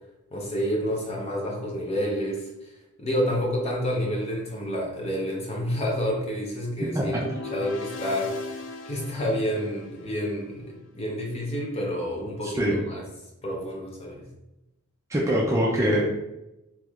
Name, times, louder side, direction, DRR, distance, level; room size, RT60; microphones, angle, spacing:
voice 1, 0.3-2.7 3.0-13.0 13.4-14.3, equal, 30° left, -2 dB, 0.7 m, -29 dB
sound 1, 7.1-10.4, left 2 dB, 60° left, 0.4 m, -37 dB
voice 2, 12.4-12.8 15.1-16.2, equal, 15° right, -3 dB, 0.3 m, -24 dB
3.4 x 3.0 x 2.3 m, 0.92 s
head